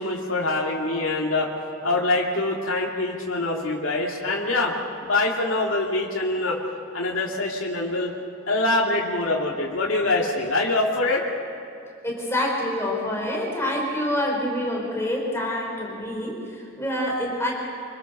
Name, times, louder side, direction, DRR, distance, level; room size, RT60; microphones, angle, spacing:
voice 1, 0.0-1.5 1.8-4.7 5.0-6.6 6.9-8.1 8.5-11.2, left 2 dB, 70° left, -3 dB, 2.6 m, -24 dB
voice 2, 12.0-17.5, left 1 dB, 10° left, -1 dB, 5.0 m, -27 dB
27.0 x 23.5 x 6.7 m, 2.8 s
head